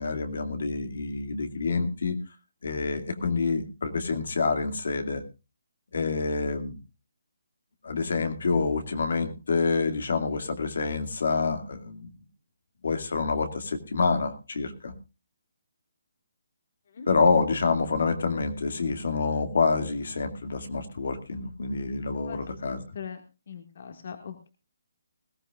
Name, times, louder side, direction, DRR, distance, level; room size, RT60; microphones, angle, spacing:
voice 1, 0.0-2.2 2.6-5.2 5.9-6.8 7.8-12.1 12.8-14.9 17.1-22.8, left 4 dB, 70° left, 7 dB, 2.4 m, -27 dB
voice 2, 22.3-23.2 23.5-24.5, left 7 dB, 55° left, 6 dB, 1.9 m, -41 dB
20.5 x 15.0 x 2.5 m, 0.29 s
hypercardioid pair, 165°, 0 cm